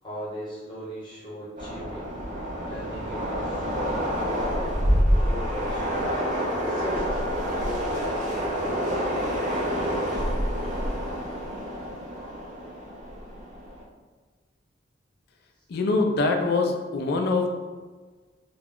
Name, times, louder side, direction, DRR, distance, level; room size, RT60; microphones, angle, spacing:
voice 1, 0.0-2.1 2.7-4.0 4.5-5.9 6.5-7.2 7.5-8.8, equal, 25° left, -7 dB, 0.9 m, -39 dB
Train, 1.6-13.8, equal, 40° right, 0.5 m, -27 dB
voice 2, 15.7-17.5, left 3 dB, 60° left, 3 dB, 0.4 m, -24 dB
2.3 x 2.1 x 3.5 m, 1.4 s
head